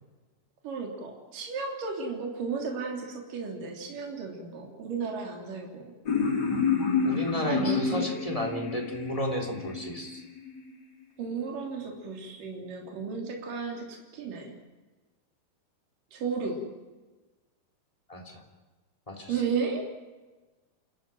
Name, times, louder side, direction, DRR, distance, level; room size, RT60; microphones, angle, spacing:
voice 1, 0.6-5.9 7.4-8.1 11.2-14.5 16.1-16.6 19.3-19.9, right 5 dB, 65° right, 1 dB, 4.7 m, -34 dB
sound 1, 6.1-10.7, left 5 dB, 30° left, 3.5 m, -29 dB
voice 2, 7.0-10.2 18.1-18.4 19.1-19.4, left 1 dB, 10° left, 3 dB, 3.1 m, -32 dB
28.5 x 14.0 x 9.1 m, 1.2 s
omnidirectional pair, 4.2 m